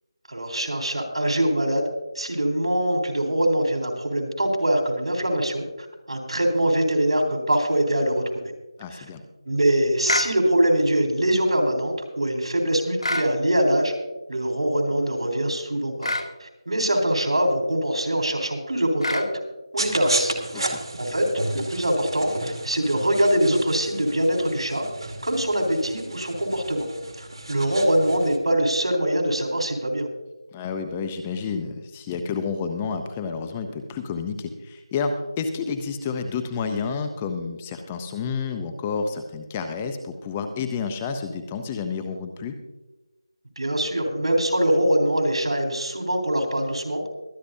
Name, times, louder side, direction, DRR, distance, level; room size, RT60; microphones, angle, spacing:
voice 1, 0.3-1.9 2.2-8.2 8.9-9.0 9.5-13.9 14.3-16.1 16.4-19.2 19.7-24.9 25.2-26.9 27.2-30.1 43.6-47.1, right 1 dB, 85° right, 3 dB, 3.7 m, -23 dB
voice 2, 8.8-9.2 20.5-20.8 30.5-42.5, left 5 dB, 10° left, 7 dB, 0.5 m, -30 dB
sound 1, 10.1-10.4 13.0-13.3 16.0-16.3 19.0-19.3, left 1 dB, 85° left, 1.8 m, -25 dB
sound 2, 19.8-28.4, right 2 dB, 65° right, 2.3 m, -33 dB
23.0 x 9.7 x 2.7 m, 1.0 s
figure-of-eight pair, 170°, 3 cm